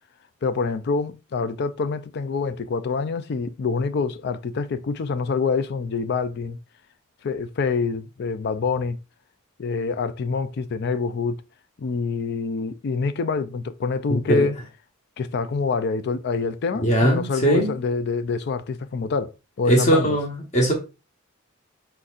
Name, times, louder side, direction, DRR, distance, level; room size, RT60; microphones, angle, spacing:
voice 1, 0.4-6.6 7.2-9.0 9.6-11.4 11.8-14.6 15.2-20.2, left 4 dB, 55° left, 0.4 m, -26 dB
voice 2, 14.1-14.5 16.8-17.7 19.7-20.7, right 1 dB, 35° left, 1.0 m, -20 dB
4.3 x 4.0 x 2.4 m
head